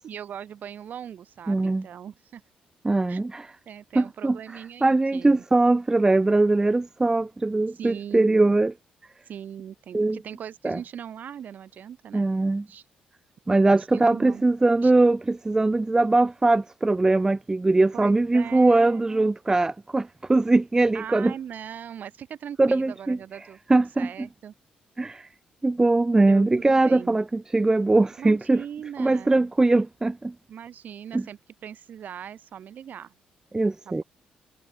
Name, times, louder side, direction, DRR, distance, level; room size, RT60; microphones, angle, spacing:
voice 1, 0.0-2.4 3.1-3.2 3.6-5.4 7.7-8.6 9.2-12.3 12.7-12.8 13.8-14.4 14.8-14.9 17.9-19.3 20.9-23.6 24.0-24.5 26.3-27.2 28.2-29.5 30.5-33.1 33.8-34.0, right 9 dB, 65° right, 5.1 m, -40 dB
voice 2, 1.5-1.9 2.8-3.5 4.0-4.4 4.8-8.7 9.9-10.2 10.6-10.8 12.1-12.7 13.5-21.3 22.6-23.2 23.7-24.1 25.0-25.3 25.6-28.6 29.0-30.3 31.1-31.2 33.5-34.0, right 2 dB, 20° right, 0.4 m, -21 dB
supercardioid pair, 55°, 3 cm